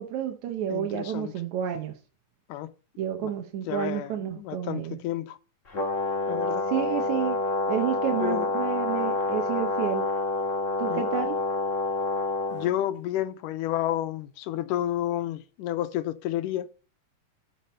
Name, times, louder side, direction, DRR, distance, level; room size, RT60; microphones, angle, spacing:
voice 1, 0.0-2.0 3.0-5.0 6.7-7.4 7.7-10.1 10.8-11.4, right 10 dB, 65° right, 2.2 m, -30 dB
voice 2, 0.7-1.3 2.5-2.7 3.2-3.3 3.7-5.4 6.3-6.7 8.2-8.5 10.9-11.1 12.5-16.7, left 12 dB, 80° left, 2.3 m, -30 dB
Brass instrument, 5.7-12.7, left 2 dB, 25° left, 1.9 m, -28 dB
12.0 x 5.9 x 5.5 m
omnidirectional pair, 3.9 m